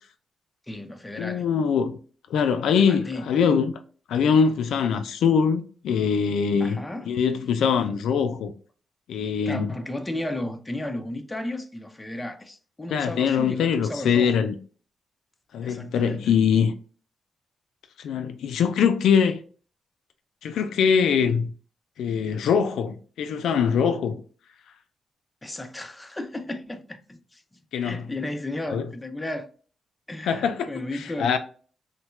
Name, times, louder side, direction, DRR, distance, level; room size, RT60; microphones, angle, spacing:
voice 1, 0.7-1.5 2.8-3.2 6.6-7.2 9.5-14.4 15.6-16.3 25.4-27.4 27.8-29.5 30.1-31.4, left 1 dB, 15° left, 0.5 m, -34 dB
voice 2, 1.2-2.0 2.3-3.7 4.1-8.5 9.1-9.7 12.9-14.6 15.5-16.7 18.0-19.4 20.4-21.5 22.0-24.2 27.7-28.0 28.7-28.9 30.2-30.7 31.2-31.4, left 6 dB, 90° left, 0.3 m, -23 dB
3.2 x 2.1 x 3.0 m
cardioid pair, 95°, 0 cm